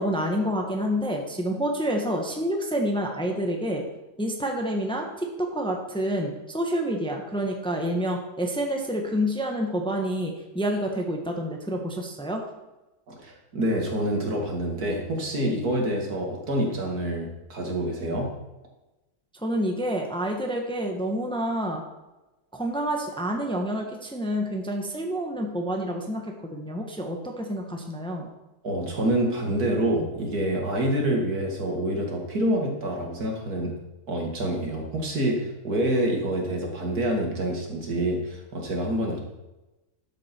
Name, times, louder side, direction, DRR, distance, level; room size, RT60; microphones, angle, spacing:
voice 1, 0.0-3.8 4.2-12.4 19.3-21.8 22.5-28.3, equal, 5° left, 2 dB, 1.3 m, -28 dB
voice 2, 13.1-18.3 28.6-33.7 34.1-39.2, right 1 dB, 75° right, 0 dB, 2.7 m, -27 dB
12.5 x 8.5 x 4.5 m, 1.0 s
omnidirectional pair, 1.6 m